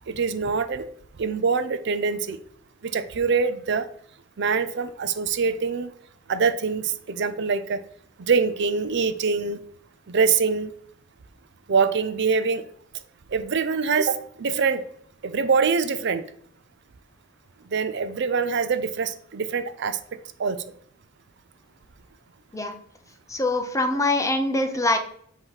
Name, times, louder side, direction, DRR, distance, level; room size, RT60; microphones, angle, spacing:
voice 1, 0.1-0.9 1.2-2.4 2.8-3.9 4.4-5.9 6.3-7.8 8.2-9.6 10.1-10.7 11.7-12.6 13.3-14.8 15.2-16.2 17.7-20.0 20.4-20.6, right 5 dB, 60° right, 11 dB, 0.5 m, -24 dB
voice 2, 23.3-25.0, left 2 dB, 15° left, 5 dB, 0.8 m, -23 dB
7.9 x 3.0 x 5.7 m, 0.63 s
head